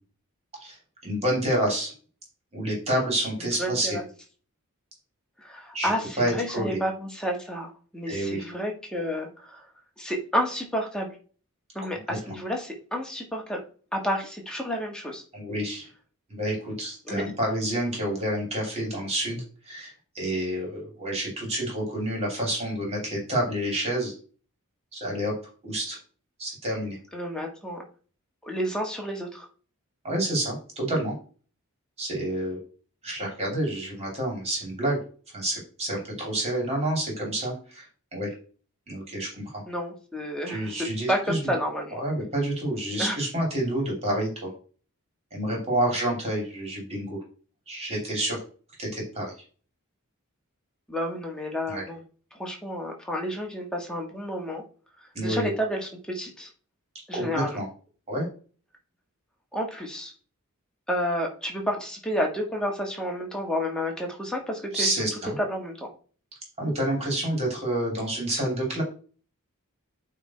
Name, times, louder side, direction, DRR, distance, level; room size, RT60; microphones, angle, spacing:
voice 1, 1.0-1.9 2.5-4.0 5.7-5.9 6.2-6.8 8.1-8.4 11.9-12.4 15.3-15.9 16.3-24.1 24.9-25.3 25.6-26.0 26.4-27.0 30.0-31.1 32.0-32.6 33.0-35.0 35.3-37.9 38.1-38.3 38.9-39.6 40.5-41.5 41.9-44.5 45.3-47.2 47.7-48.4 48.8-49.3 51.7-51.8 55.1-55.5 57.1-57.7 58.1-58.3 64.7-65.3 66.6-68.8, right 1 dB, 30° right, -2 dB, 3.1 m, -28 dB
voice 2, 3.6-4.0 5.4-9.6 10.0-11.1 11.7-13.6 13.9-15.2 17.0-17.2 27.1-27.8 28.4-29.4 39.7-42.0 43.0-43.2 50.9-52.0 52.3-54.6 55.2-56.5 57.1-57.6 59.5-60.1 60.9-64.9 65.4-65.9, equal, 5° left, 0 dB, 1.7 m, -30 dB
8.6 x 3.7 x 4.4 m, 0.39 s
head